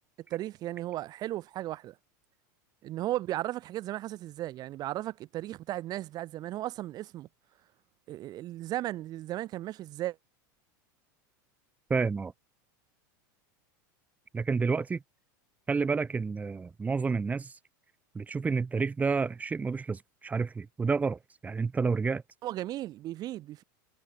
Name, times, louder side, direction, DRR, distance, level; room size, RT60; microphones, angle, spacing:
voice 1, 0.3-1.9 2.8-7.3 8.1-10.2 22.4-23.6, right 14 dB, 40° right, 1.5 m, -35 dB
voice 2, 11.9-12.3 14.3-15.0 15.7-17.5 18.1-22.2, right 4 dB, 15° right, 1.1 m, -29 dB
supercardioid pair, 130°, 10 cm